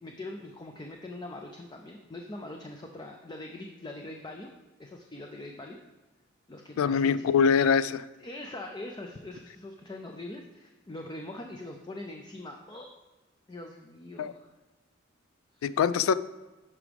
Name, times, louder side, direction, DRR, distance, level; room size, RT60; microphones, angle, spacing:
voice 1, 0.0-4.5 4.8-5.8 6.5-7.3 8.2-12.9 13.5-14.5 15.6-15.7, left 2 dB, 20° left, 3 dB, 0.5 m, -42 dB
voice 2, 6.8-8.0 14.2-14.3 15.6-16.1, left 6 dB, 90° left, 16 dB, 0.3 m, -23 dB
11.0 x 4.8 x 3.5 m, 1.2 s
head